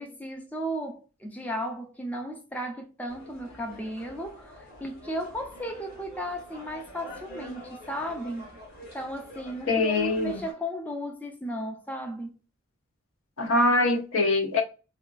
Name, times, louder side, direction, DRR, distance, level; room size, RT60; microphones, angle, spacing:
voice 1, 0.0-8.6 8.9-12.3, equal, 5° left, 0.4 m, -35 dB
sound 1, 3.1-10.5, left 1 dB, 50° left, 1.7 m, -46 dB
voice 2, 9.7-10.4 13.4-14.6, left 2 dB, 70° left, 0.6 m, -23 dB
3.6 x 2.2 x 2.3 m
head